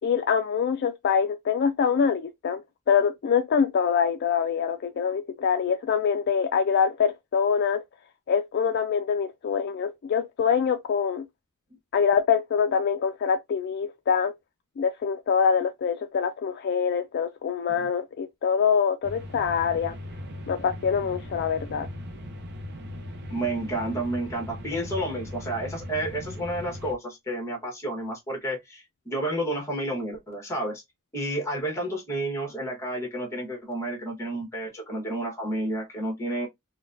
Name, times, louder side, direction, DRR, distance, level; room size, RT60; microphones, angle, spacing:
voice 1, 0.0-2.6 2.9-7.8 8.3-11.3 11.9-14.3 14.8-19.9 20.5-21.9, left 6 dB, 50° left, 0.3 m, -24 dB
sound 1, 19.0-26.9, left 1 dB, 50° right, 0.7 m, -39 dB
voice 2, 23.3-30.8 31.1-36.5, right 1 dB, 15° left, 1.2 m, -31 dB
4.0 x 2.2 x 2.5 m
head